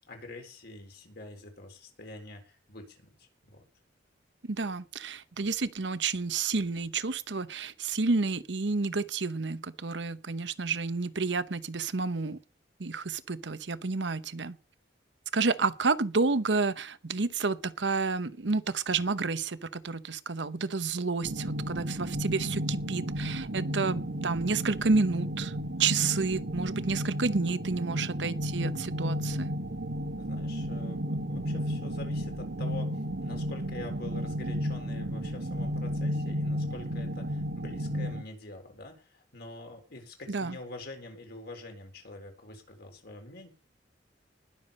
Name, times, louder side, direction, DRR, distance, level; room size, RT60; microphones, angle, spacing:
voice 1, 0.1-3.6 30.2-43.5, left 2 dB, 60° left, 4.1 m, -46 dB
voice 2, 4.4-12.4 12.8-14.6 15.3-25.5 25.8-29.5 40.3-40.6, right 4 dB, 70° right, 1.0 m, -30 dB
sound 1, 21.2-38.2, equal, 90° right, 1.7 m, -33 dB
20.0 x 7.2 x 5.4 m
head